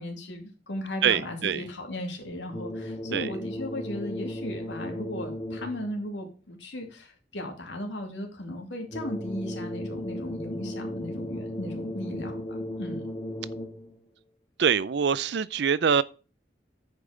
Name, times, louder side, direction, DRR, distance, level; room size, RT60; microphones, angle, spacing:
voice 1, 0.0-13.0, left 1 dB, 80° left, 2.6 m, -36 dB
voice 2, 1.0-1.6 3.1-3.3 14.6-16.0, right 7 dB, 65° right, 0.5 m, -24 dB
sound 1, 2.5-5.9 8.9-13.9, left 1 dB, 30° left, 1.8 m, -36 dB
9.9 x 5.5 x 5.0 m
head